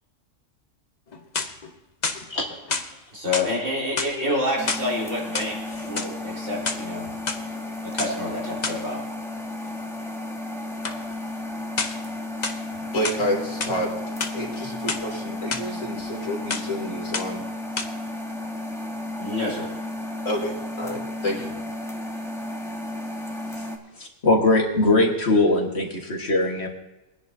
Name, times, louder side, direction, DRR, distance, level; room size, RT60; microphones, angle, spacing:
sound 1, 1.1-1.7 2.0-2.9 3.3-3.5 3.9-4.9 5.2-6.1 6.5-7.4 8.0-8.1 8.6-8.8 10.8-11.0 11.8-12.1 12.4-13.2 13.6-13.8 14.1-15.0 15.5-15.6 16.0-16.2 16.5-16.8 17.1-17.4 17.8-17.9, left 4 dB, 40° left, 1.0 m, -29 dB
voice 1, 3.1-7.1 7.8-9.0 19.2-19.7, left 1 dB, 75° right, -4 dB, 4.5 m, -28 dB
sound 2, 4.6-23.8, left 1 dB, ahead, 1.3 m, -33 dB
voice 2, 12.9-13.9 14.3-17.4 20.3-21.6, equal, 75° left, -1 dB, 3.4 m, -29 dB
voice 3, 24.0-26.7, left 2 dB, 55° left, 1 dB, 1.9 m, -21 dB
22.5 x 10.0 x 2.8 m, 1.0 s
omnidirectional pair, 1.3 m